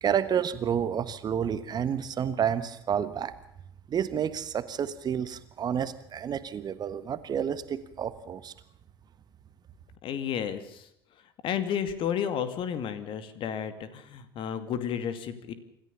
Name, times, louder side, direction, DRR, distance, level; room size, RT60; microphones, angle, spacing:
voice 1, 0.0-3.3 3.9-8.5, right 8 dB, 35° right, 13 dB, 1.4 m, -30 dB
voice 2, 10.0-10.9 11.4-15.5, left 8 dB, 45° left, 12 dB, 2.3 m, -32 dB
26.5 x 14.0 x 6.9 m, 0.77 s
figure-of-eight pair, 65°, 12 cm